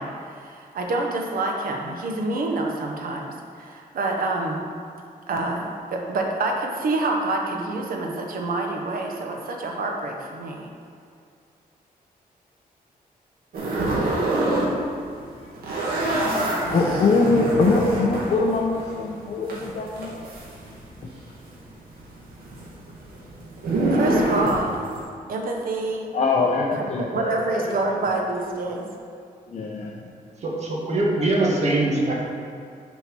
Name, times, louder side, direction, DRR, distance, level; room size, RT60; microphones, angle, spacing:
voice 1, 0.0-4.6 5.3-10.7 23.9-24.8 25.3-26.1 26.7-28.9, right 2 dB, 70° right, 1 dB, 1.1 m, -27 dB
sound 1, 13.5-14.7 15.0-21.2 21.4-25.0, right 2 dB, 85° right, 1.9 m, -26 dB
voice 2, 16.6-20.2 26.1-27.7 29.5-30.0, left 3 dB, 45° left, -2 dB, 0.7 m, -23 dB
voice 3, 30.4-32.1, right 2 dB, 45° right, -2 dB, 1.5 m, -22 dB
7.0 x 4.5 x 6.1 m, 2.3 s
wide cardioid pair, 160°, 15 cm